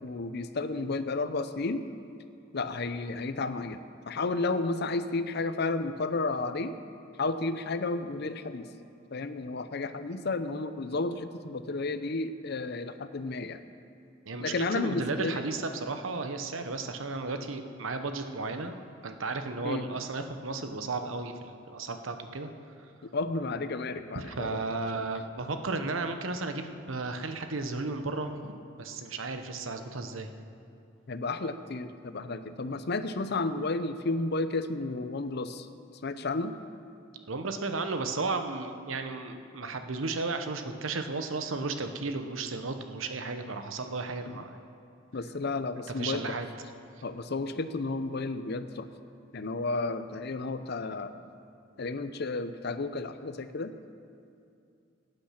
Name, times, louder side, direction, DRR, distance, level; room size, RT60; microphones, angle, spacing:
voice 1, 0.0-1.9 2.5-6.7 7.2-8.7 9.1-13.6 14.4-15.5 19.6-19.9 23.1-24.7 24.9-25.1 31.1-35.7 36.0-36.5 44.3-44.4 45.1-46.4 47.0-48.9 49.3-51.2 51.8-53.7, left 3 dB, 55° left, 11 dB, 0.6 m, -32 dB
voice 2, 14.3-18.8 19.0-22.5 24.1-30.3 37.3-44.6 46.0-46.5, right 3 dB, 90° right, 7 dB, 1.0 m, -34 dB
18.0 x 8.8 x 5.8 m, 2.5 s
head